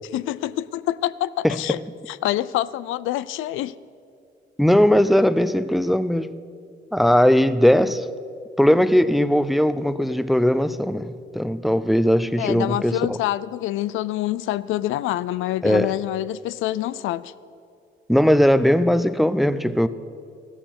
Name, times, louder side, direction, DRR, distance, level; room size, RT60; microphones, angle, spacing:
voice 1, 0.1-1.8 2.1-3.7 12.4-17.3, left 14 dB, 85° left, 0.4 m, -26 dB
voice 2, 4.6-6.3 6.9-8.1 8.6-13.2 15.6-15.9 18.1-19.9, equal, ahead, 0.5 m, -19 dB
14.5 x 13.0 x 6.0 m
cardioid pair, 90°, 20 cm